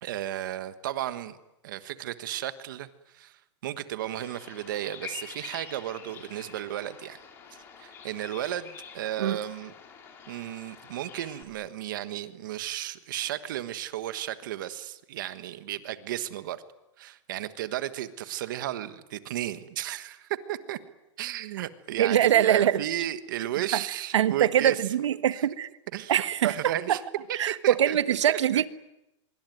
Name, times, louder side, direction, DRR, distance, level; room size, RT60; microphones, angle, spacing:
voice 1, 0.0-1.4 1.6-7.2 7.8-9.7 10.3-16.6 17.0-20.8 21.2-24.8 25.3-25.5 25.9-27.0 27.5-28.7, right 12 dB, 40° right, 12 dB, 1.4 m, -34 dB
Bird vocalization bird call bird song, 4.1-11.4, left 7 dB, 15° left, 2.9 m, -46 dB
voice 2, 22.0-22.8 24.1-25.7 26.1-26.5 27.4-28.7, right 10 dB, 75° right, 13 dB, 1.4 m, -23 dB
25.5 x 23.5 x 9.3 m, 0.91 s
supercardioid pair, 180°, 15 cm